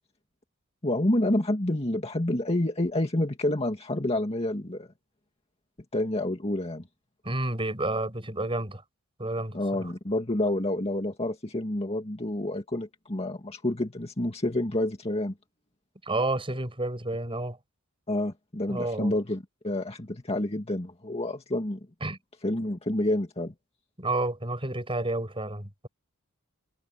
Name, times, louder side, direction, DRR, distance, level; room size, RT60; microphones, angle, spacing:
voice 1, 0.8-4.9 5.9-6.8 9.5-15.3 18.1-21.8 22.4-23.5, left 1 dB, 30° left, 2.0 m, -28 dB
voice 2, 7.2-8.8 9.2-9.6 16.1-17.6 18.7-19.1 22.0-22.2 24.0-25.9, right 2 dB, 25° right, 7.7 m, -30 dB
head